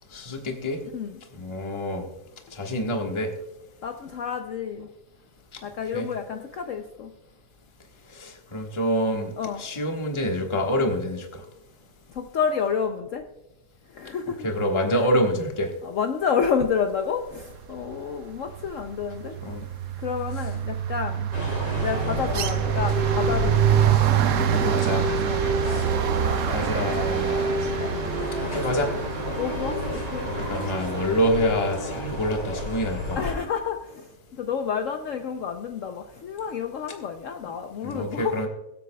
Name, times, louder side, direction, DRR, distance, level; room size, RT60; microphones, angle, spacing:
voice 1, 0.1-0.8 1.4-2.0 2.5-3.3 5.9-6.0 8.1-9.3 9.6-11.2 14.4-15.7 19.4-19.6 23.3-23.4 24.7-25.0 25.6-25.9 26.2-27.6 28.5-28.9 29.3-29.4 30.5-33.2 37.8-38.5, equal, 20° left, 2 dB, 1.3 m, -26 dB
voice 2, 3.8-4.9 5.6-7.1 9.4-9.6 12.1-13.3 13.9-14.5 14.9-15.1 15.8-19.4 20.0-21.3 21.8-23.8 24.3-25.0 25.3-25.6 25.9-26.0 28.4-29.1 29.4-30.8 33.1-38.4, left 6 dB, 65° left, 6 dB, 0.9 m, -30 dB
sound 1, 17.7-18.1 18.3-31.5, right 10 dB, 65° right, 0.9 m, -26 dB
sound 2, 21.3-33.3, equal, 85° left, 3.7 m, -29 dB
23.0 x 8.4 x 2.2 m, 0.95 s
omnidirectional pair, 1.8 m